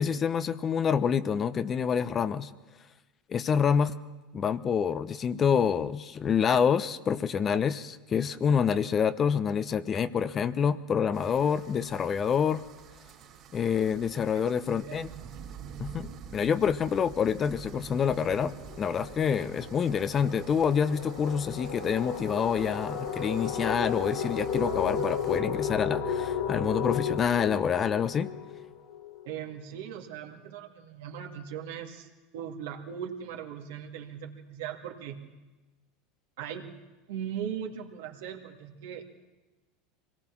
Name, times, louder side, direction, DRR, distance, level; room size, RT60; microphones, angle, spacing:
voice 1, 0.0-2.5 3.3-4.0 4.3-12.6 13.5-15.1 15.8-28.3, left 7 dB, 35° left, 13 dB, 0.9 m, -27 dB
sound 1, 11.1-25.4, right 7 dB, 45° right, 3.2 m, -48 dB
voice 2, 14.3-15.0 29.2-35.3 36.4-36.7 37.1-39.1, right 8 dB, 75° right, 2 dB, 2.3 m, -39 dB
sound 2, 17.1-17.3 17.7-29.2, left 6 dB, 70° left, 2.8 m, -34 dB
24.5 x 18.5 x 6.1 m, 1.2 s
hypercardioid pair, 95°, 0 cm